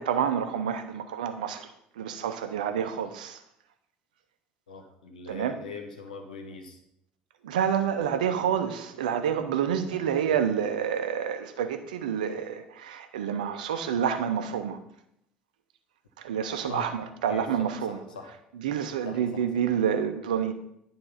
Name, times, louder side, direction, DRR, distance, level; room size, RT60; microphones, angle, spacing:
voice 1, 0.0-1.7 2.0-3.4 5.3-5.5 7.4-14.8 16.2-18.0 18.6-20.5, right 8 dB, 70° right, 8 dB, 0.7 m, -28 dB
voice 2, 4.7-6.8 9.9-10.1 16.7-16.9 17.3-18.3 19.0-19.5, left 3 dB, 75° left, 4 dB, 1.1 m, -42 dB
9.8 x 3.8 x 5.5 m, 0.76 s
figure-of-eight pair, 60°, 4 cm